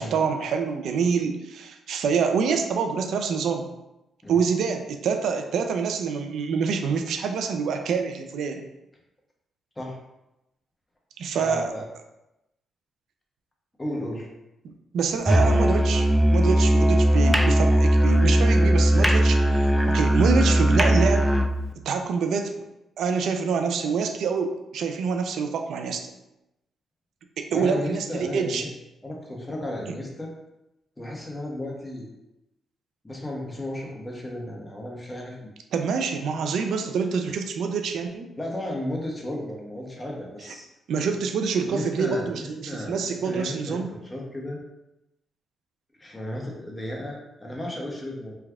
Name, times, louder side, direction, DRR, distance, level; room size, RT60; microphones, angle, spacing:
voice 1, 0.0-3.7 4.3-8.6 11.2-11.7 14.9-21.2 21.9-22.5 23.0-26.0 27.4-28.6 29.9-30.0 35.7-38.3 40.9-43.9, right 5 dB, 75° right, 5 dB, 0.4 m, -26 dB
voice 2, 11.3-11.8 13.8-14.3 27.5-28.7 29.0-30.3 31.0-32.1 33.0-35.5 38.4-40.7 41.6-44.6 46.0-48.3, left 1 dB, 15° left, -2 dB, 1.0 m, -34 dB
Musical instrument, 15.3-21.6, equal, ahead, 0.3 m, -19 dB
3.3 x 2.3 x 3.5 m, 0.91 s
cardioid pair, 65°, 0 cm